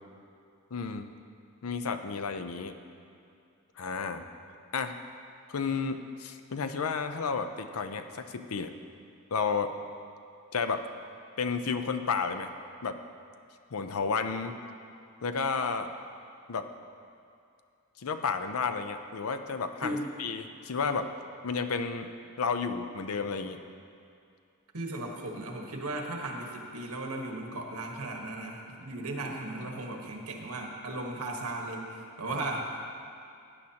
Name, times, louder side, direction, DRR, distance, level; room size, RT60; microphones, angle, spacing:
voice 1, 0.7-1.1 1.6-2.8 3.8-4.2 4.7-4.9 5.5-8.7 9.3-9.7 10.5-10.9 11.4-12.5 12.8-13.0 13.7-14.6 15.2-15.9 16.5-16.7 18.0-21.1 21.4-22.1 22.4-23.6, left 5 dB, 70° left, 8 dB, 0.6 m, -32 dB
voice 2, 24.7-32.7, right 2 dB, 80° right, 1 dB, 1.4 m, -36 dB
15.5 x 10.0 x 2.9 m, 2.4 s
head